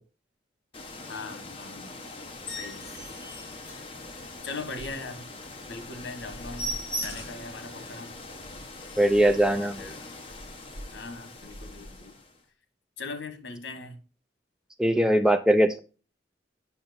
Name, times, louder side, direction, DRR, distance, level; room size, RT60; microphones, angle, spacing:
sound 1, 0.7-12.4, left 2 dB, 30° left, 1.0 m, -43 dB
voice 1, 1.1-1.9 2.6-3.0 4.4-5.3 5.7-6.7 7.0-8.1 9.5-10.1 10.9-12.1 13.0-14.0, left 3 dB, 85° left, 1.2 m, -40 dB
sound 2, 2.3-4.5 4.9-5.0 5.4-5.5 5.8-5.9 6.2-7.5 8.0-8.1 8.4-8.5 8.7-9.3 10.0-10.2, equal, 70° left, 3.3 m, -38 dB
voice 2, 9.0-9.9 14.8-15.8, right 1 dB, 5° right, 0.4 m, -21 dB
8.6 x 5.6 x 2.5 m
head